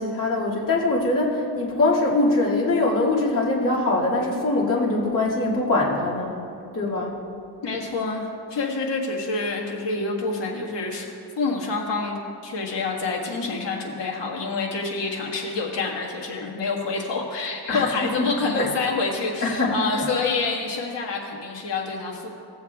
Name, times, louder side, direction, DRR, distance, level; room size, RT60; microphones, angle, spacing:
voice 1, 0.0-6.4 6.7-7.2 17.7-18.3 18.5-18.7 19.4-20.0, left 2 dB, 50° left, -6 dB, 2.4 m, -23 dB
voice 2, 7.6-12.2 12.4-22.3, left 3 dB, 80° left, -1 dB, 1.6 m, -27 dB
17.5 x 7.1 x 2.4 m, 2.5 s
cardioid pair, 110°, 42 cm